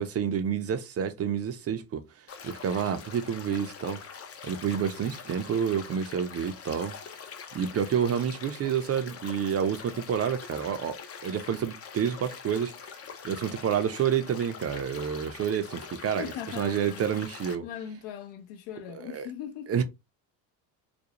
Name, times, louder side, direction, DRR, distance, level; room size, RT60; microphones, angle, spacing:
voice 1, 0.0-4.0 4.4-6.9 7.5-12.7 13.2-17.7 18.9-19.3 19.7-19.8, right 8 dB, 35° right, 0.4 m, -29 dB
sound 1, 2.3-17.5, left 6 dB, 35° left, 0.5 m, -44 dB
voice 2, 16.2-17.2 17.6-19.8, left 9 dB, 80° left, 0.6 m, -39 dB
2.5 x 2.0 x 2.8 m
supercardioid pair, 95°, 43 cm